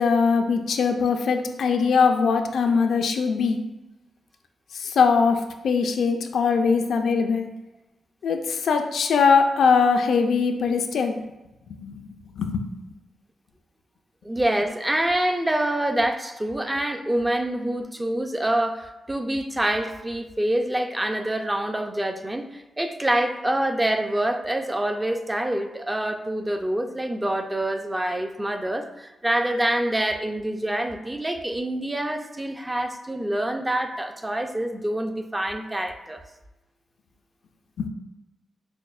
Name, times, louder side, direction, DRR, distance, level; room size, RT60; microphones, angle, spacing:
voice 1, 0.0-3.6 4.7-7.5 8.2-11.2 11.7-12.7 37.8-37.9, left 5 dB, 75° left, 5 dB, 0.3 m, -21 dB
voice 2, 14.2-36.2, right 1 dB, 15° right, 5 dB, 0.4 m, -26 dB
6.0 x 2.0 x 2.4 m, 1.0 s
cardioid pair, 70°, 0 cm